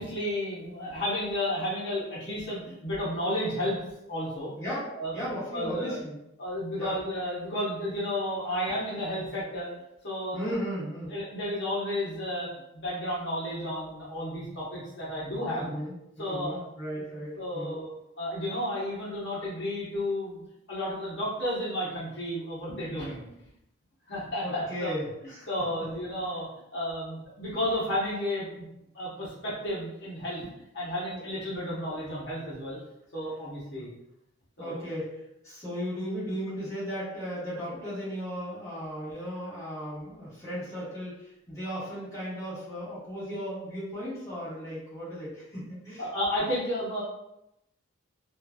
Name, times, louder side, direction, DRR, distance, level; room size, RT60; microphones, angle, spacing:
voice 1, 0.0-3.8 4.1-4.5 5.0-6.0 6.4-9.7 10.0-10.4 11.1-15.7 16.2-16.6 16.9-17.0 17.4-17.9 18.2-20.4 20.7-23.2 24.1-24.9 25.5-26.5 26.7-28.6 28.9-30.4 30.7-32.8 33.1-33.9 34.6-34.8 46.0-47.0, left 1 dB, 60° left, -8 dB, 1.0 m, -32 dB
voice 2, 4.6-4.9 5.1-6.2 6.8-7.0 10.3-11.2 15.4-17.8 24.4-25.5 33.7-33.9 34.6-46.1, equal, 15° left, -11 dB, 1.3 m, -36 dB
3.1 x 2.4 x 2.3 m, 0.84 s
head